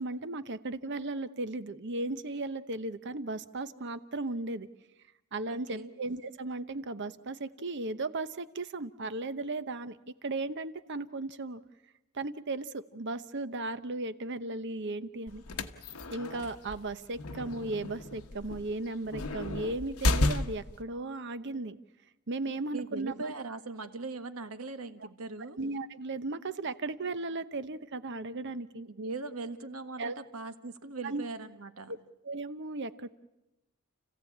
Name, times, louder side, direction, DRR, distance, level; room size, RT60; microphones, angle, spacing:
voice 1, 0.0-4.7 5.3-10.0 10.2-11.6 12.1-15.4 16.1-21.8 22.3-23.3 25.6-28.9 30.0-30.2 31.0-31.2 31.9-32.0 32.2-33.1, right 2 dB, 55° right, 12 dB, 0.9 m, -36 dB
voice 2, 5.5-5.9 22.7-25.6 28.8-31.9, right 3 dB, 75° right, 9 dB, 1.5 m, -40 dB
sound 1, 15.3-20.8, left 2 dB, 80° left, 1.2 m, -33 dB
29.5 x 15.5 x 8.6 m, 0.98 s
head